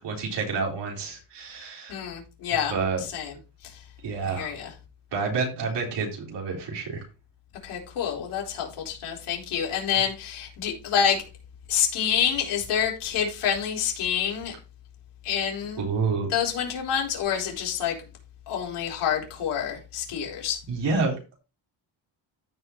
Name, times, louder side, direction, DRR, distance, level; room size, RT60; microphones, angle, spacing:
voice 1, 0.0-2.0 2.7-3.0 4.0-4.5 5.1-7.0 15.8-16.3 20.7-21.4, right 4 dB, 60° right, 3.8 m, -28 dB
voice 2, 1.9-3.3 3.6-3.8 4.2-4.7 7.6-11.2 11.7-14.5 15.2-15.9 16.3-18.0 18.5-20.6, left 8 dB, 90° left, 4.1 m, -27 dB
14.5 x 5.6 x 2.9 m
cardioid pair, 160°, 49 cm